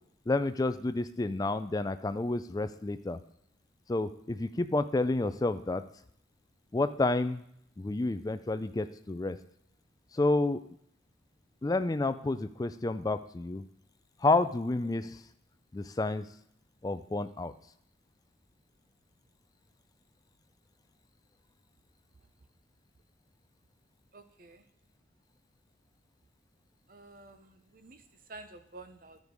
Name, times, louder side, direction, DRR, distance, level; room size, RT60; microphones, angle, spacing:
voice 1, 0.3-3.2 3.9-5.8 6.7-7.4 7.8-9.4 10.1-10.6 11.6-13.6 14.2-15.2 15.7-16.2 16.8-17.5, left 2 dB, 20° left, 11 dB, 0.3 m, -30 dB
voice 2, 24.1-24.6 26.9-28.0 28.3-29.2, right 2 dB, 45° right, 8 dB, 0.7 m, -50 dB
12.0 x 5.2 x 4.7 m, 0.72 s
head